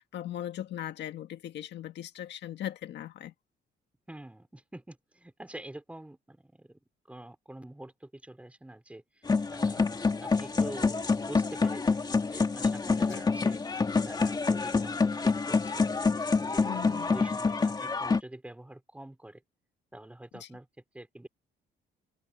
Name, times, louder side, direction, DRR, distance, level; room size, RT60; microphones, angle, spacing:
voice 1, 0.0-3.3 13.1-13.2 16.6-17.1 20.4-20.5, left 11 dB, 65° left, 1.7 m, -39 dB
voice 2, 4.1-6.8 7.1-13.6 14.1-15.9 16.4-19.4 19.9-20.7 20.9-21.3, right 1 dB, 5° right, 4.9 m, -46 dB
sound 1, 9.3-18.2, left 4 dB, 20° left, 2.6 m, -27 dB
cardioid pair, 140°, 19 cm